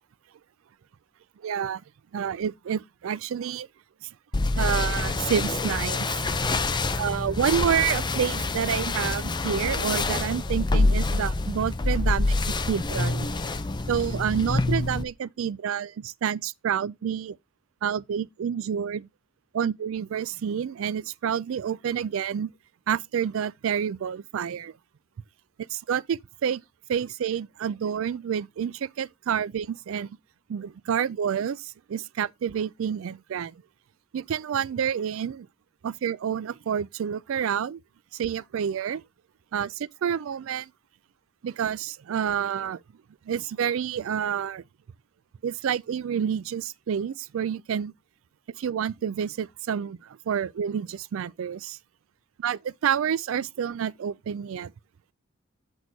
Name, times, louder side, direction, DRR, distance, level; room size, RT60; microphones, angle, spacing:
voice 1, 1.4-1.8 2.1-3.7 4.0-4.1 4.6-6.1 7.0-12.3 12.7-13.3 13.9-17.4 17.8-19.1 19.5-22.5 22.9-24.8 25.7-26.6 26.9-30.1 30.5-33.6 34.1-35.5 35.8-37.8 38.1-39.0 39.5-40.7 41.4-42.8 43.3-44.6 45.4-47.9 48.6-51.8 52.4-54.7, right 8 dB, 70° right, 0.3 m, -28 dB
sound 1, 4.3-15.0, left 2 dB, 20° left, 0.6 m, -26 dB
7.9 x 6.2 x 3.9 m
head